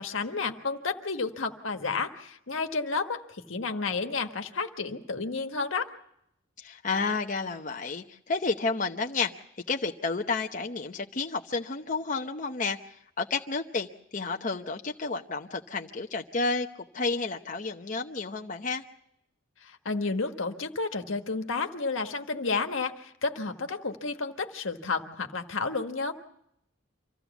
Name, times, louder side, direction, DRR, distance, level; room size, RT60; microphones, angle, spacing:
voice 1, 0.0-5.9 19.6-26.1, left 4 dB, 85° left, 6 dB, 1.5 m, -31 dB
voice 2, 6.6-9.3 9.7-13.9 14.1-18.8, left 4 dB, 40° left, 3 dB, 0.8 m, -31 dB
25.5 x 15.5 x 7.1 m, 0.76 s
head